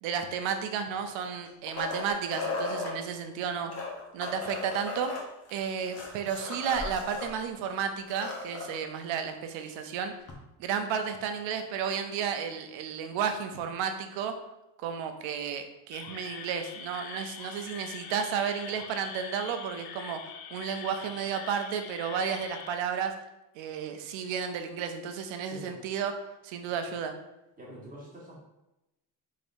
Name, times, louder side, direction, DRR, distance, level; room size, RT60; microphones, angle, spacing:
voice 1, 0.0-3.7 4.1-5.1 5.5-10.1 10.6-14.3 14.8-20.2 20.5-23.1 23.6-26.1 26.4-27.1, right 7 dB, 70° right, 7 dB, 0.7 m, -32 dB
sound 1, 1.0-3.0 3.6-7.3 7.6-7.7 8.0-8.8 10.3-10.4, left 3 dB, 30° left, 0.9 m, -36 dB
sound 2, 15.9-22.8, left 8 dB, 50° left, 0.4 m, -44 dB
voice 2, 25.4-25.8 26.7-26.8 27.6-28.4, equal, 15° right, -5 dB, 1.4 m, -46 dB
3.7 x 3.4 x 2.6 m, 0.95 s
cardioid pair, 100°, 47 cm